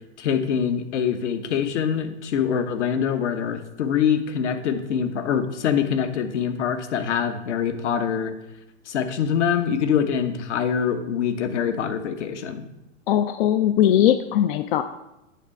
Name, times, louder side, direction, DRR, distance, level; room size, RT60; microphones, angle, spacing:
voice 1, 0.2-8.3 8.9-12.6, left 7 dB, 65° left, 8 dB, 1.1 m, -24 dB
voice 2, 13.1-14.8, left 11 dB, 45° left, 10 dB, 0.5 m, -19 dB
8.4 x 6.1 x 4.6 m, 0.92 s
hypercardioid pair, 115°, 37 cm